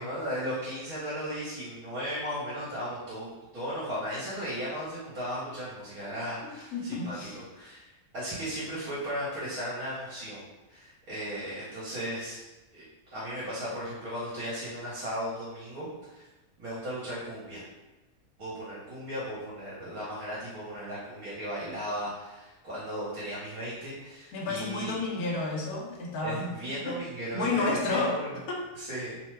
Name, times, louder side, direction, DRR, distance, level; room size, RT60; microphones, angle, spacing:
voice 1, 0.0-10.4 10.7-12.4 12.7-12.8 13.1-16.3 16.6-17.6 18.4-25.0 26.2-28.4 28.7-29.2, equal, 65° right, -9 dB, 1.3 m, -36 dB
voice 2, 6.4-7.4 24.3-27.0 27.3-28.2 28.5-28.6, left 3 dB, 75° left, -1 dB, 1.1 m, -31 dB
3.0 x 2.1 x 3.2 m, 1.1 s
omnidirectional pair, 1.7 m